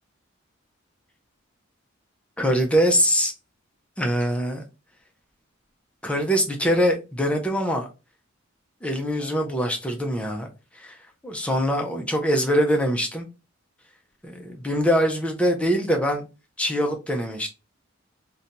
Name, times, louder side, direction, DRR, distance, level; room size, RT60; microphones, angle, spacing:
voice 1, 2.4-3.3 4.0-4.6 6.0-7.9 8.8-10.5 10.8-11.0 11.2-13.3 14.2-16.3 16.6-17.5, equal, 5° left, 0.4 m, -23 dB
2.6 x 2.2 x 2.8 m
head